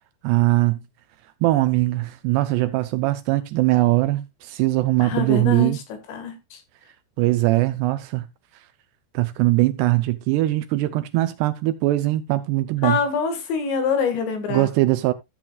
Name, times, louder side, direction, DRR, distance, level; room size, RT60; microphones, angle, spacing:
voice 1, 0.2-0.8 1.4-5.8 7.2-8.3 9.1-13.0 14.5-15.1, right 18 dB, 85° right, 2.4 m, -21 dB
voice 2, 5.0-5.8 6.1-6.6 12.8-14.7, left 5 dB, 70° left, 4.0 m, -25 dB
15.0 x 7.5 x 2.4 m
omnidirectional pair, 5.4 m